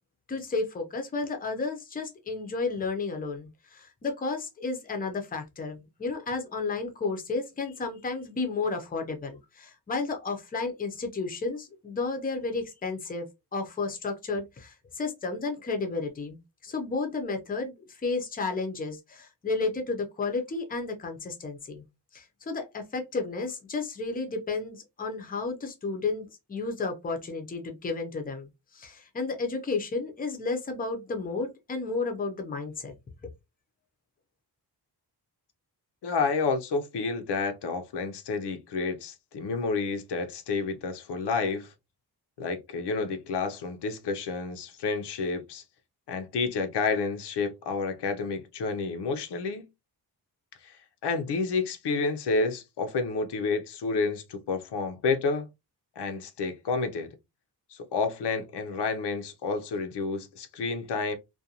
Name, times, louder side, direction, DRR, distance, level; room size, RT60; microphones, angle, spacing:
voice 1, 0.3-13.3 13.5-21.8 22.1-32.9, left 3 dB, 20° left, 0.5 m, -32 dB
voice 2, 36.0-41.7 42.4-45.6 46.1-49.7 50.6-50.8 51.0-55.5 56.0-57.1 57.7-61.2, left 4 dB, 85° left, 0.6 m, -30 dB
2.5 x 2.2 x 2.7 m
wide cardioid pair, 155°, 40 cm